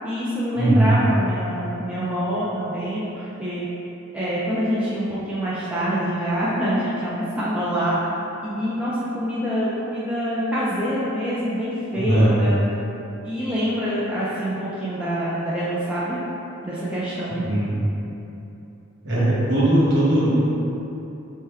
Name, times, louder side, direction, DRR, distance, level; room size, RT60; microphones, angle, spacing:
voice 1, 0.0-3.7 4.1-8.0 8.4-12.6 13.2-16.2 16.6-17.4, equal, 5° right, -10 dB, 0.3 m, -25 dB
voice 2, 0.5-1.0 12.0-12.3 17.4-17.7 19.0-20.5, right 1 dB, 55° right, -8 dB, 0.8 m, -19 dB
3.4 x 2.1 x 3.3 m, 2.9 s
head